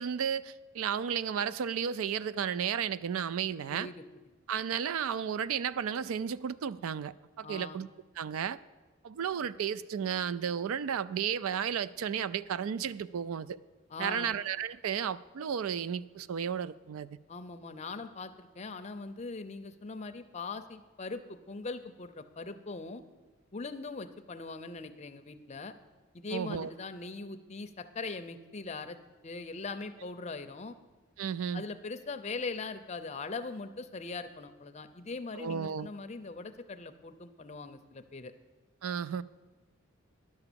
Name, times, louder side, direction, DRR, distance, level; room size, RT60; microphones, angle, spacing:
voice 1, 0.0-3.9 4.5-7.9 8.2-8.6 9.0-13.6 14.0-17.1 26.3-26.7 31.2-31.6 35.4-35.9 38.8-39.2, right 8 dB, 75° right, 0.3 m, -33 dB
voice 2, 3.7-4.0 7.4-7.8 13.9-14.3 17.3-23.0 23.5-25.7 26.1-29.0 29.2-30.7 31.5-38.3, left 3 dB, 30° left, 0.5 m, -41 dB
11.0 x 7.1 x 6.8 m
head